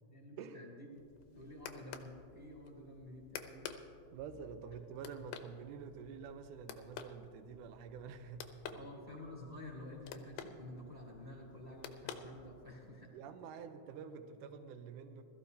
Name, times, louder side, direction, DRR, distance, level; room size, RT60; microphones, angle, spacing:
voice 1, 0.1-1.0 1.3-3.8 8.7-13.6, left 1 dB, 5° right, -3 dB, 2.8 m, -51 dB
sound 1, 0.9-12.9, left 8 dB, 85° left, 2.6 m, -52 dB
voice 2, 4.1-8.9 13.1-15.2, right 6 dB, 75° right, 8 dB, 1.9 m, -48 dB
21.0 x 14.0 x 2.8 m, 2.5 s
omnidirectional pair, 4.3 m